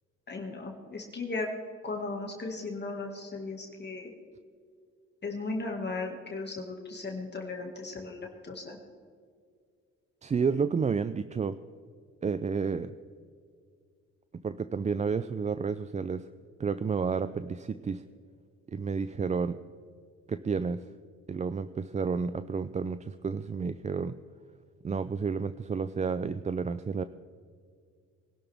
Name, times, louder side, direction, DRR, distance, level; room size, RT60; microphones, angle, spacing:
voice 1, 0.3-1.5 1.8-4.1 5.2-8.8, left 3 dB, 35° left, 1 dB, 2.0 m, -36 dB
voice 2, 10.2-11.6 12.2-12.9 14.3-16.3 16.6-18.0 18.7-19.6 20.3-20.8 21.3-24.2 24.8-27.0, right 5 dB, 25° right, 12 dB, 0.4 m, -31 dB
23.5 x 12.0 x 3.5 m, 2.1 s
cardioid pair, 90°, 30 cm